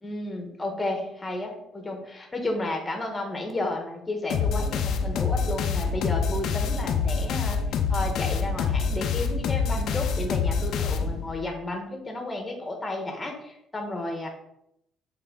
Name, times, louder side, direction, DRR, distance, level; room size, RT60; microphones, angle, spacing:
voice 1, 0.0-7.6 7.9-14.3, left 2 dB, 15° left, 2 dB, 1.3 m, -32 dB
sound 1, 4.3-11.5, left 5 dB, 60° left, 0.6 m, -26 dB
7.8 x 3.8 x 3.8 m, 0.79 s
cardioid pair, 150°, 0 cm